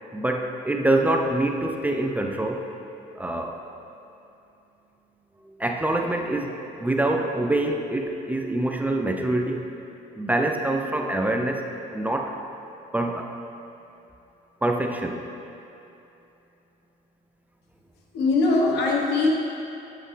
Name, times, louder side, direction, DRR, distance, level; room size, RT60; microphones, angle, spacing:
voice 1, 0.1-2.7 3.2-3.6 5.4-9.7 10.2-11.6 11.9-12.4 12.9-13.3 14.6-15.2, right 1 dB, 10° right, 2 dB, 0.5 m, -25 dB
voice 2, 18.1-19.3, left 3 dB, 80° left, -1 dB, 1.3 m, -21 dB
8.0 x 7.7 x 3.3 m, 2.8 s
cardioid pair, 110°, 17 cm